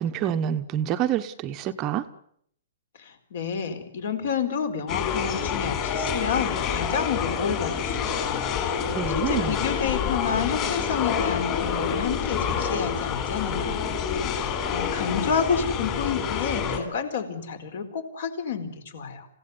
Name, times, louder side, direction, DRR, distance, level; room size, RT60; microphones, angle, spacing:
voice 1, 0.0-2.0 8.8-9.5, right 10 dB, 20° right, 8 dB, 0.9 m, -27 dB
voice 2, 3.0-8.5 9.1-13.8 14.7-19.3, left 6 dB, 55° left, 10 dB, 4.5 m, -29 dB
sound 1, 4.9-16.8, left 7 dB, 25° left, 4.2 m, -27 dB
27.0 x 16.5 x 9.7 m, 0.70 s
hypercardioid pair, 170°, 0 cm